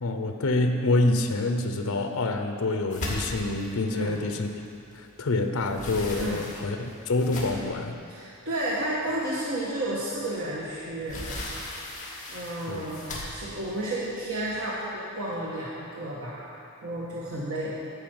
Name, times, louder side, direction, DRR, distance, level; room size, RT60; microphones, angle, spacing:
voice 1, 0.0-4.5 4.9-8.0 12.7-12.9, left 2 dB, 75° left, 5 dB, 0.7 m, -27 dB
sound 1, 2.9-5.1 5.4-7.8 8.5-8.6 9.0-9.1 10.5-14.8, left 1 dB, 35° left, 2.1 m, -37 dB
voice 2, 6.1-6.4 8.1-11.2 12.3-13.1 13.3-17.7, right 1 dB, 70° right, -7 dB, 1.4 m, -32 dB
11.0 x 5.2 x 7.8 m, 2.5 s
head